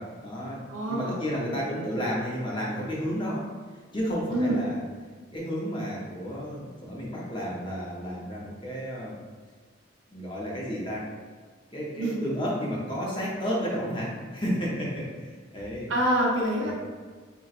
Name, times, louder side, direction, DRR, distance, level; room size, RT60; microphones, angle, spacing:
voice 1, 0.0-0.6 0.9-3.5 3.9-4.8 5.3-9.2 10.1-11.1 11.7-15.9 16.6-16.7, equal, 25° left, -5 dB, 0.6 m, -32 dB
voice 2, 0.7-1.9 4.3-4.6 12.0-12.2 15.9-16.7, right 1 dB, 80° right, -2 dB, 0.6 m, -27 dB
4.0 x 2.2 x 2.4 m, 1.5 s
head